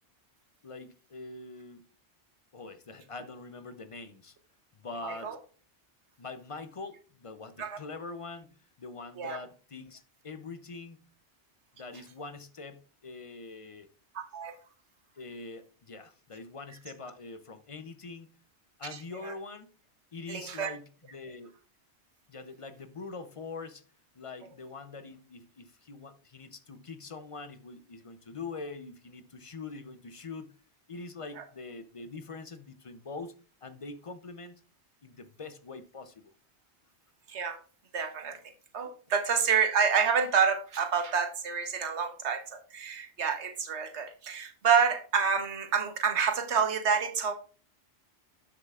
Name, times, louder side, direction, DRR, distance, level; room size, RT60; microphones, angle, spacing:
voice 1, 0.6-1.8 2.5-4.4 4.7-5.4 6.2-11.0 11.7-13.9 15.1-18.4 18.8-19.7 20.1-21.6 22.3-23.8 24.1-30.5 30.9-34.6 35.0-36.3, left 3 dB, 40° left, 0.5 m, -44 dB
voice 2, 5.0-5.4 7.6-7.8 9.2-9.4 14.1-14.6 19.2-19.3 20.3-20.7 31.4-31.5 37.3-37.6 37.9-38.4 38.7-47.3, right 6 dB, 75° right, 1.3 m, -28 dB
11.5 x 6.6 x 2.4 m
omnidirectional pair, 1.2 m